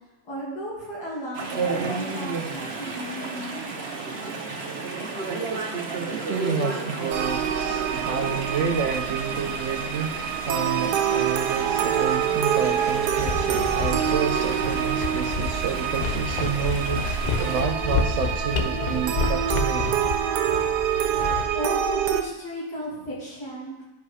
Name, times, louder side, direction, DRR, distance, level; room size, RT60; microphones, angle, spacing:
voice 1, 0.3-3.7 21.5-23.7, equal, 85° left, -6 dB, 3.2 m, -34 dB
Chatter / Stream, 1.3-17.6, right 3 dB, 45° right, 1.2 m, -33 dB
voice 2, 6.3-20.0, right 6 dB, 65° right, 4 dB, 0.7 m, -29 dB
sound 1, 7.1-22.2, right 9 dB, 85° right, 1.3 m, -26 dB
sound 2, 12.9-21.4, left 4 dB, 55° left, 0.5 m, -30 dB
10.5 x 5.1 x 4.9 m, 0.99 s
omnidirectional pair, 1.7 m